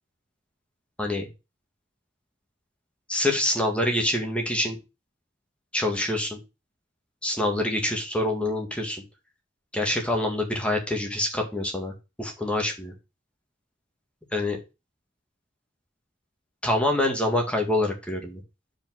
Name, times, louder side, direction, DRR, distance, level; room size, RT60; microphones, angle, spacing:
voice 1, 3.1-4.8 5.7-6.4 7.2-9.0 9.7-11.9 12.2-12.9 14.3-14.6 16.6-18.4, left 1 dB, 5° left, 2 dB, 1.8 m, -26 dB
5.2 x 5.0 x 6.2 m, 0.27 s
head